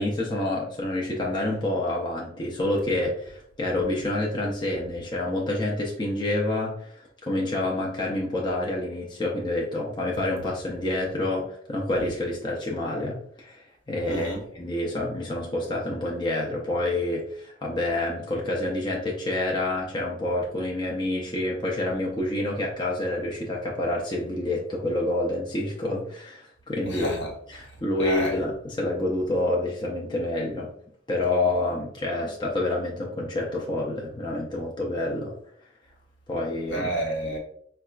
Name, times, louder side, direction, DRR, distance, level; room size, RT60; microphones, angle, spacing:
voice 1, 0.0-27.1 27.5-30.7 31.1-35.3 36.3-36.9, left 1 dB, 25° left, 0.5 m, -28 dB
voice 2, 14.1-14.4 26.8-27.3 28.0-28.4 36.7-37.4, right 1 dB, 80° left, 1.1 m, -29 dB
4.6 x 2.3 x 2.3 m
head